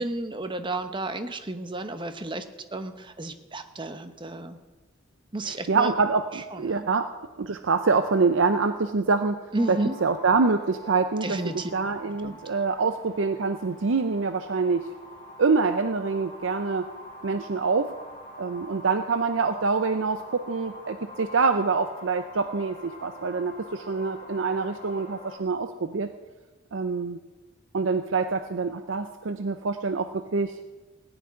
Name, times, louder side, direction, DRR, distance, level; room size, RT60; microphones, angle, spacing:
voice 1, 0.0-2.4 2.7-4.6 5.3-5.9 6.5-6.9 9.5-9.9 11.2-11.7 12.2-12.4, right 2 dB, 25° right, 9 dB, 0.9 m, -32 dB
voice 2, 5.4-7.1 7.4-9.4 9.7-11.4 11.7-14.9 15.4-16.9 17.2-17.9 18.4-26.1 26.7-27.2 27.7-30.5, right 4 dB, 70° right, 8 dB, 0.6 m, -25 dB
sound 1, 9.6-25.4, left 1 dB, 25° left, 3.5 m, -45 dB
17.5 x 6.1 x 9.7 m, 1.2 s
head